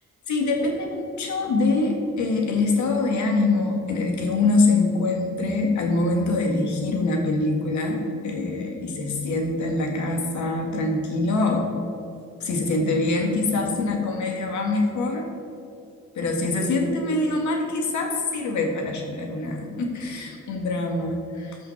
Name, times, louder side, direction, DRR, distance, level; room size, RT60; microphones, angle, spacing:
voice 1, 0.3-11.7 12.4-15.3 16.2-21.6, left 3 dB, 70° left, 1 dB, 1.9 m, -24 dB
13.0 x 5.8 x 4.6 m, 2.7 s
cardioid pair, 90°, 30 cm